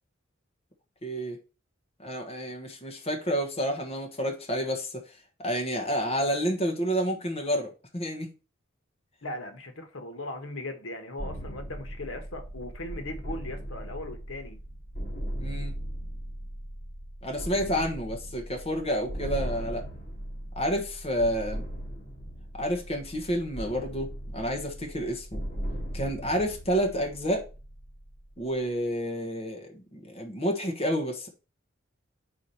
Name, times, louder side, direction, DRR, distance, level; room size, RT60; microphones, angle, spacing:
voice 1, 1.0-1.4 2.0-5.0 5.4-8.3 15.4-15.8 17.2-19.9 20.5-21.6 22.6-25.4 25.9-27.4 28.4-31.3, equal, 30° left, 1.3 m, -29 dB
voice 2, 9.2-14.6, left 1 dB, 85° left, 1.4 m, -38 dB
sound 1, 11.2-28.9, equal, 45° left, 3.0 m, -38 dB
4.9 x 4.7 x 5.6 m
head